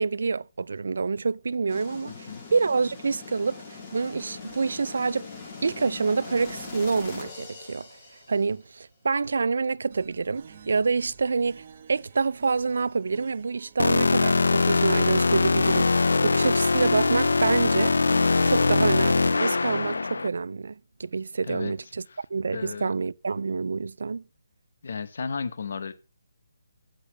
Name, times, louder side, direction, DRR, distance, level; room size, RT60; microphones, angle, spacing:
voice 1, 0.0-5.3 5.6-7.9 8.3-17.9 18.4-22.0 22.3-24.2, right 4 dB, 60° right, 0.4 m, -27 dB
sound 1, 1.7-8.6, left 4 dB, 20° left, 1.8 m, -42 dB
voice 2, 2.1-2.4 21.5-21.7 22.1-22.2 22.5-22.9 24.8-25.9, left 5 dB, 50° left, 0.9 m, -34 dB
sound 2, 9.9-15.2, right 7 dB, 30° right, 1.0 m, -49 dB
sound 3, 13.8-20.3, left 3 dB, 90° left, 0.4 m, -22 dB
8.6 x 6.5 x 5.6 m
hypercardioid pair, 175°, 0 cm